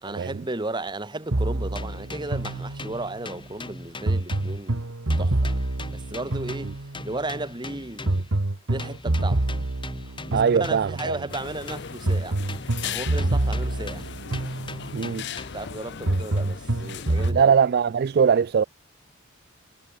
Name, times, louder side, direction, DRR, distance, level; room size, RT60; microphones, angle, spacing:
voice 1, 0.0-4.9 5.2-5.6 5.9-8.2 8.7-9.5 10.0-12.4 12.8-14.1 15.5-17.6, right 2 dB, 20° right, 1.3 m, -34 dB
sound 1, 1.3-3.2 4.1-7.1 8.1-11.1 12.1-15.1 16.1-17.4, right 2 dB, 70° right, 1.4 m, -27 dB
sound 2, 1.7-4.8 5.1-8.4 8.8-12.1 12.5-15.8, left 2 dB, 25° left, 5.5 m, -41 dB
voice 2, 10.3-11.2 14.9-15.3 17.3-18.6, right 6 dB, 50° right, 0.3 m, -21 dB
sound 3, 11.3-17.3, left 7 dB, 55° left, 0.7 m, -38 dB
head